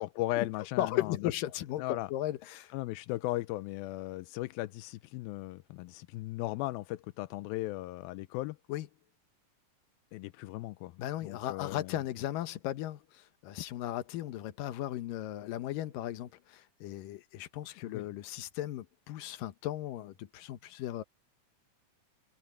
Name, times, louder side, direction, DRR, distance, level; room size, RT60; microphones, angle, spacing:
voice 1, 0.0-1.3 1.8-2.1 2.7-8.6 10.1-12.0 17.7-18.0, left 17 dB, 90° left, 2.5 m, -37 dB
voice 2, 0.8-2.7 8.7-8.9 11.0-21.0, left 14 dB, 75° left, 2.7 m, -36 dB
omnidirectional pair, 4.1 m